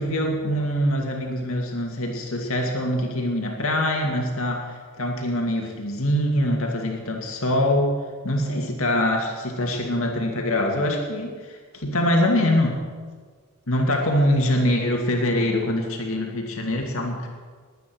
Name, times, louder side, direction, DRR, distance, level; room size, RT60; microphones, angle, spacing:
voice 1, 0.0-8.0 8.2-12.8 13.7-17.3, left 1 dB, 65° left, 1 dB, 2.3 m, -24 dB
21.0 x 9.3 x 6.2 m, 1.5 s
head